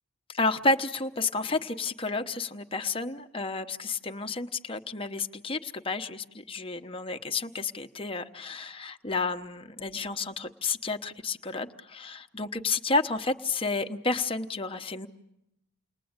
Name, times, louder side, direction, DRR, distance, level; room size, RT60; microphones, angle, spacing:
voice 1, 0.3-15.1, left 3 dB, 25° left, 6 dB, 1.0 m, -31 dB
29.5 x 21.0 x 8.8 m, 0.85 s
head